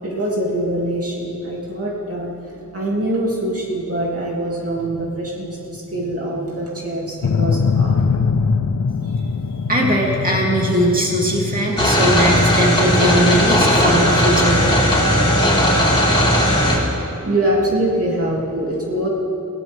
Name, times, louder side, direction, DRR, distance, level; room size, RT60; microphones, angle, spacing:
voice 1, 0.0-8.2 16.8-16.9 17.2-19.1, right 1 dB, 50° right, -4 dB, 2.9 m, -24 dB
sound 1, 7.2-15.4, left 5 dB, 65° left, 0.8 m, -23 dB
voice 2, 9.7-14.8, right 1 dB, 30° right, -3 dB, 3.1 m, -19 dB
sound 2, 11.8-16.8, equal, 15° left, 4.8 m, -16 dB
22.5 x 17.5 x 3.7 m, 2.8 s
wide cardioid pair, 75°, 31 cm